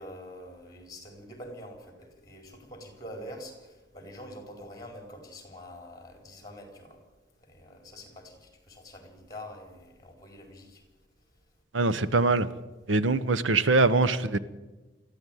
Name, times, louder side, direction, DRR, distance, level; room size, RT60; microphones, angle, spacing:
voice 1, 0.0-7.0 7.5-10.8, equal, 20° left, 4 dB, 4.5 m, -45 dB
voice 2, 11.7-12.5 12.9-14.4, right 3 dB, 85° right, 15 dB, 1.0 m, -23 dB
21.0 x 15.0 x 9.3 m, 1.2 s
head